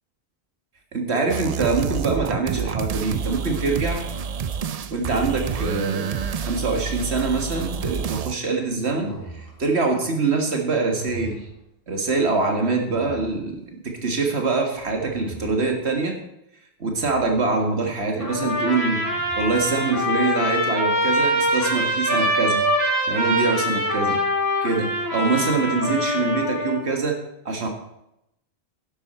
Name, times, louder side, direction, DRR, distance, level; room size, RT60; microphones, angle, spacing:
voice 1, 0.9-4.1 4.9-11.5 11.9-16.2 16.8-19.0 19.3-22.6 23.1-24.2 24.6-27.2 27.5-27.7, right 3 dB, 85° right, 3 dB, 2.0 m, -24 dB
sound 1, 1.3-8.3, right 6 dB, 50° right, 0.5 m, -28 dB
sound 2, 8.8-9.8 10.9-11.6 12.7-13.5 14.7-15.7 16.8-17.4 18.9-19.7, right 1 dB, 75° left, 4.7 m, -40 dB
Trumpet, 18.2-26.8, equal, 15° right, 3.7 m, -23 dB
11.5 x 10.5 x 4.4 m, 0.84 s
omnidirectional pair, 1.1 m